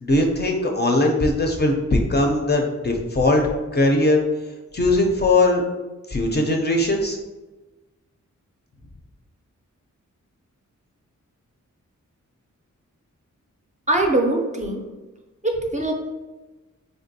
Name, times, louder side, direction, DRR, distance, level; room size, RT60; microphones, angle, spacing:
voice 1, 0.0-3.4 3.7-4.2 4.7-5.6 6.1-7.2, left 2 dB, 35° left, 1 dB, 0.4 m, -20 dB
voice 2, 13.9-14.8 15.4-15.9, right 2 dB, 25° right, 1 dB, 0.4 m, -22 dB
3.4 x 2.5 x 2.6 m, 1.2 s
wide cardioid pair, 70°, 31 cm